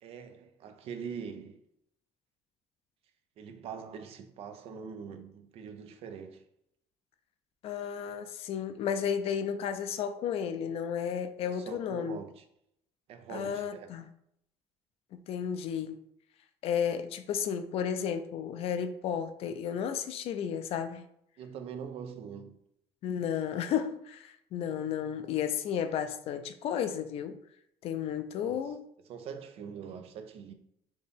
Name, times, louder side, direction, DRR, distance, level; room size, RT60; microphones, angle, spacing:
voice 1, 0.0-1.6 3.4-6.4 11.4-12.4 13.1-13.9 21.4-22.6 28.4-28.7 29.1-30.5, right 7 dB, 65° right, 0.5 m, -43 dB
voice 2, 7.6-12.2 13.3-14.1 15.1-16.0 16.6-21.0 23.0-27.4 27.8-28.8, left 8 dB, 65° left, 0.4 m, -33 dB
4.3 x 2.7 x 3.4 m
cardioid pair, 115°, 11 cm